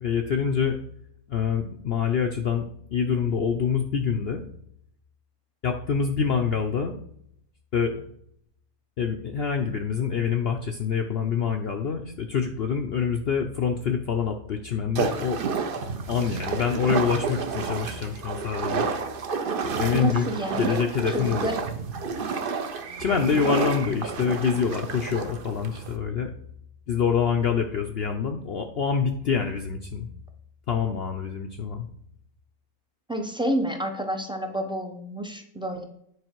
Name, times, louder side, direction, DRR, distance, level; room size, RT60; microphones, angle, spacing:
voice 1, 0.0-0.8 1.3-4.4 5.6-6.9 7.7-8.0 9.0-15.4 16.1-18.9 19.8-20.3 20.6-21.5 23.0-26.3 26.9-30.1 30.7-31.9, left 6 dB, 60° left, 4 dB, 0.6 m, -26 dB
sound 1, 15.0-26.0, right 5 dB, 50° right, 0.7 m, -30 dB
voice 2, 19.9-20.8 21.1-21.6 33.1-35.8, right 1 dB, 5° right, 4 dB, 0.4 m, -29 dB
9.6 x 4.8 x 4.5 m, 0.70 s
omnidirectional pair, 1.6 m